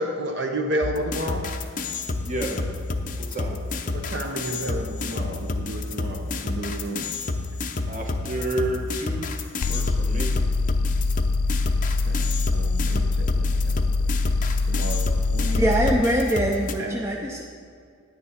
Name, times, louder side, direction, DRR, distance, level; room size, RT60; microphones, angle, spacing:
voice 1, 0.0-1.5 3.9-7.1 12.0-14.2 14.7-15.7 16.8-17.3, right 1 dB, 50° right, 2 dB, 0.9 m, -31 dB
sound 1, 0.8-16.7, left 3 dB, 35° left, 0.6 m, -30 dB
voice 2, 2.2-2.6 3.2-3.6 7.9-9.3 9.7-10.3, right 1 dB, 35° right, 0 dB, 1.4 m, -30 dB
sound 2, 9.6-16.0, left 3 dB, 90° left, 0.5 m, -24 dB
voice 3, 15.6-17.4, right 1 dB, 10° right, -1 dB, 0.5 m, -23 dB
10.0 x 9.3 x 4.2 m, 2.3 s
head